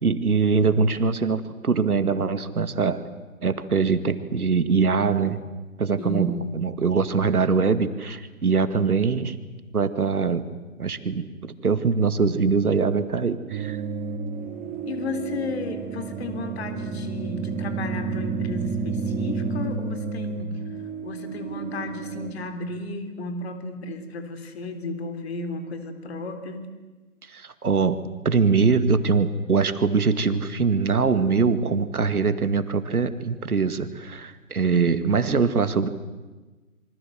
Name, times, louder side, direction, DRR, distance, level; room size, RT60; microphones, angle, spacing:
voice 1, 0.0-3.0 3.4-5.4 5.8-9.4 9.7-10.4 10.8-13.8 27.3-35.9, right 5 dB, 75° right, 11 dB, 2.3 m, -23 dB
voice 2, 6.0-6.6 14.8-20.6 21.0-26.7, left 2 dB, 45° left, 8 dB, 3.7 m, -33 dB
sound 1, 13.5-22.3, right 5 dB, 15° right, 4.1 m, -31 dB
27.0 x 25.0 x 7.8 m, 1.2 s
figure-of-eight pair, 150°, 44 cm